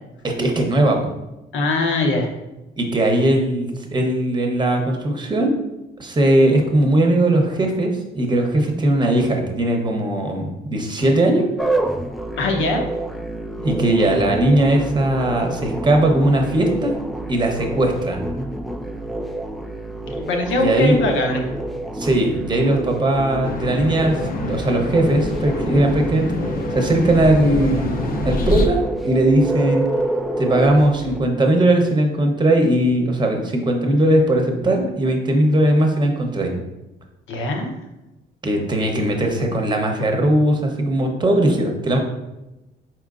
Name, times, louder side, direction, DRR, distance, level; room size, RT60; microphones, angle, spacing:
voice 1, 0.2-1.1 2.8-5.6 6.0-11.5 13.6-16.9 17.3-18.2 20.6-21.0 21.9-26.4 26.7-29.8 30.4-36.5 38.4-42.0, right 1 dB, 20° right, 2 dB, 0.8 m, -19 dB
voice 2, 1.5-2.3 12.4-12.8 20.2-21.4 37.3-37.7, left 2 dB, 75° left, 3 dB, 0.9 m, -21 dB
sound 1, 11.6-31.2, right 1 dB, ahead, 0.3 m, -28 dB
sound 2, 23.4-28.7, left 2 dB, 45° left, 0.6 m, -26 dB
4.4 x 4.4 x 2.5 m, 0.98 s
cardioid pair, 90°, 20 cm